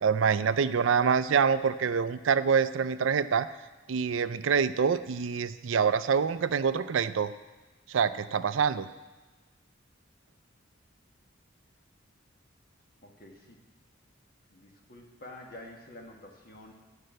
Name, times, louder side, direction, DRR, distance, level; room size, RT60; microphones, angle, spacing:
voice 1, 0.0-3.5 3.9-7.3 7.9-8.9, right 6 dB, 75° right, 13 dB, 0.4 m, -26 dB
voice 2, 13.0-13.6 14.5-16.7, left 1 dB, 45° left, 1 dB, 1.6 m, -48 dB
11.5 x 5.4 x 7.7 m, 1.2 s
head